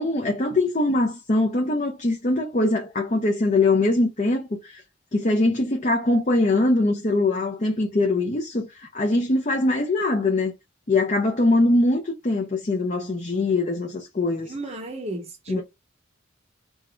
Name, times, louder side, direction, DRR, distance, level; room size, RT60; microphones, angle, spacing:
voice 1, 0.0-4.8 5.1-10.5 10.9-14.5 15.5-15.6, left 2 dB, 35° left, 0.7 m, -22 dB
voice 2, 14.5-15.6, right 2 dB, 30° right, 0.8 m, -33 dB
3.9 x 2.5 x 4.4 m
head